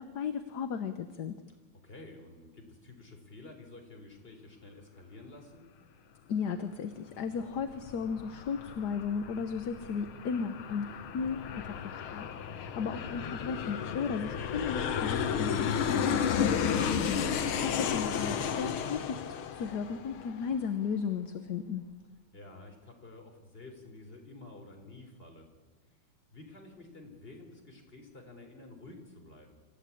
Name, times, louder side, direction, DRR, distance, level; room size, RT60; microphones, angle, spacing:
voice 1, 0.0-1.4 6.3-16.6 17.0-21.8, left 6 dB, 60° left, 9 dB, 1.5 m, -35 dB
voice 2, 1.8-5.6 22.3-25.5 26.3-29.5, left 2 dB, 25° left, 3 dB, 4.0 m, -50 dB
Aircraft, 7.4-20.6, left 7 dB, 85° left, 2.0 m, -33 dB
26.5 x 14.5 x 8.6 m, 1.3 s
omnidirectional pair, 2.2 m